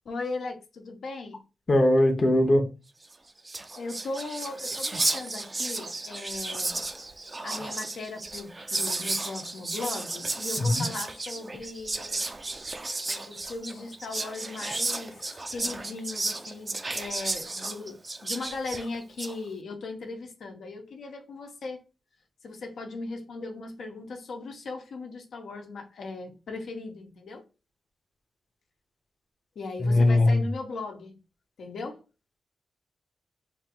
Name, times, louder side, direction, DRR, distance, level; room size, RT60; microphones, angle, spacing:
voice 1, 0.0-1.4 3.8-6.8 7.4-12.2 13.1-15.2 15.5-21.8 22.4-27.4 29.6-31.2 31.6-32.0, left 3 dB, 80° left, 0.9 m, -38 dB
voice 2, 1.7-2.6 10.6-10.9 29.8-30.4, left 1 dB, 30° left, 0.7 m, -20 dB
Whispering, 3.1-3.2 3.4-19.3, right 2 dB, 25° right, 0.4 m, -33 dB
3.5 x 2.7 x 4.2 m
wide cardioid pair, 155°, 0 cm